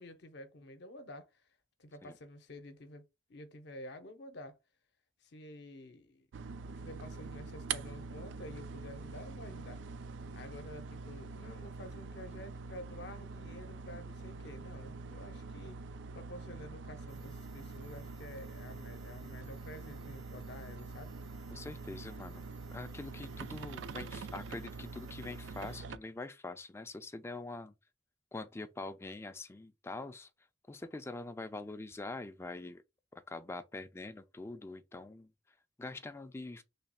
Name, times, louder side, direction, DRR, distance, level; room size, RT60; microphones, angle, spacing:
voice 1, 0.0-1.5 1.8-4.6 5.2-6.3 6.8-9.8 10.3-15.8 16.1-21.2, left 1 dB, 65° left, 0.6 m, -50 dB
sound 1, 6.3-26.0, right 4 dB, 85° right, 0.3 m, -45 dB
sound 2, 17.1-25.8, right 5 dB, 60° right, 0.8 m, -63 dB
voice 2, 21.5-22.4 22.7-27.7 28.3-30.3 30.7-32.8 33.1-35.3 35.8-36.6, left 2 dB, 15° left, 0.3 m, -44 dB
3.2 x 2.3 x 4.1 m
head